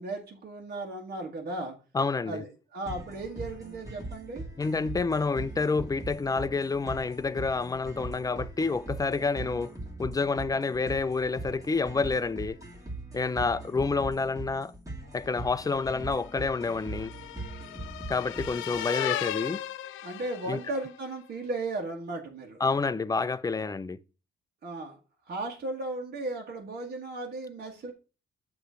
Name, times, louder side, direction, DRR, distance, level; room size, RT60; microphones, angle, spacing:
voice 1, 0.0-1.8 2.2-4.4 20.0-22.6 24.6-25.0 25.3-27.9, right 2 dB, 50° right, 1.6 m, -36 dB
voice 2, 1.9-2.4 4.6-9.7 10.0-12.6 13.1-14.7 15.1-17.1 18.1-19.6 20.5-20.6 22.6-24.0, left 4 dB, 20° left, 0.4 m, -28 dB
sound 1, 2.9-18.8, right 2 dB, 15° right, 2.4 m, -41 dB
sound 2, 15.5-21.0, left 13 dB, 85° left, 0.5 m, -37 dB
7.9 x 3.2 x 6.2 m
cardioid pair, 90°, 20 cm